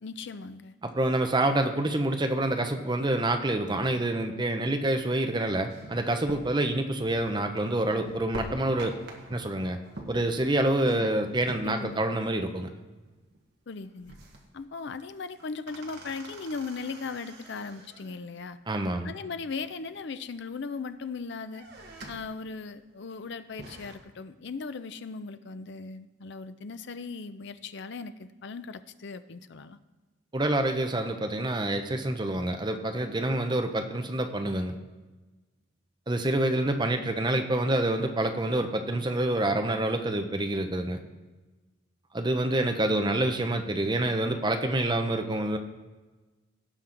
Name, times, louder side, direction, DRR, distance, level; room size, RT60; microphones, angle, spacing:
voice 1, 0.0-0.7 10.8-11.1 11.6-12.0 13.7-14.2 14.5-18.6 19.0-21.7 22.1-29.8, left 4 dB, 55° left, 11 dB, 0.5 m, -38 dB
voice 2, 0.8-9.0 9.3-9.8 10.1-12.7 18.7-19.1 30.3-34.7 36.1-41.0 42.1-45.6, right 1 dB, 20° right, 6 dB, 0.7 m, -27 dB
sound 1, 5.7-12.4 12.6-12.7 13.1-13.4 13.7-14.6 15.1-18.2 19.4-20.2 20.7-21.1 21.4-22.4 22.8-22.9 23.3-24.0, right 1 dB, 50° right, 1.4 m, -45 dB
17.5 x 5.9 x 3.9 m, 1.2 s
head